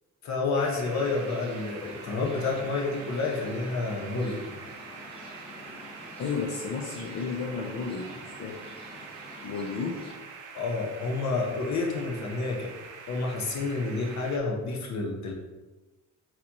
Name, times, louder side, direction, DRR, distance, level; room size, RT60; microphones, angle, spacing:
voice 1, 0.2-4.4 10.5-12.7 13.1-15.3, left 3 dB, 65° left, 0 dB, 0.9 m, -29 dB
sound 1, 0.5-14.4, right 5 dB, 85° right, 0.6 m, -45 dB
sound 2, 1.0-10.1, left 1 dB, 20° left, 1.0 m, -47 dB
voice 2, 6.2-8.6 9.4-10.1, left 5 dB, 50° left, 0 dB, 0.5 m, -33 dB
3.9 x 2.8 x 2.9 m, 1.2 s
cardioid pair, 90°, 30 cm